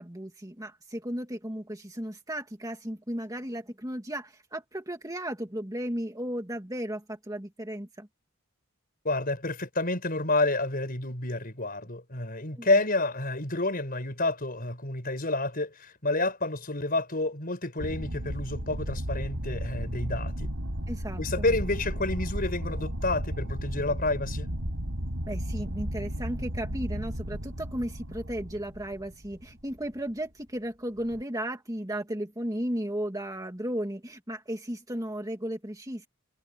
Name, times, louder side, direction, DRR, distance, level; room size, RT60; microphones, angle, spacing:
voice 1, 0.0-8.1 12.6-12.7 20.9-21.5 25.2-36.1, right 1 dB, 15° right, 2.2 m, -35 dB
voice 2, 9.0-20.5 21.2-24.5, left 2 dB, 40° left, 5.8 m, -29 dB
sound 1, 17.8-29.9 31.0-31.2, equal, 75° right, 5.4 m, -34 dB
head